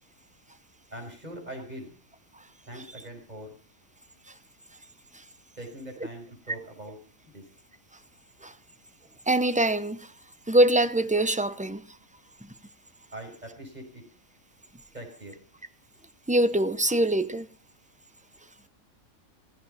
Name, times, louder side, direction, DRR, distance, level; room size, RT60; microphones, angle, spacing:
voice 1, 0.9-1.9 2.6-3.5 5.6-7.0 7.3-7.4 13.1-14.0 14.9-15.3, right 1 dB, 30° right, 6.0 m, -42 dB
voice 2, 9.3-10.1 10.5-11.8 16.3-17.5, right 1 dB, 10° right, 0.6 m, -23 dB
17.0 x 15.0 x 5.6 m
omnidirectional pair, 1.5 m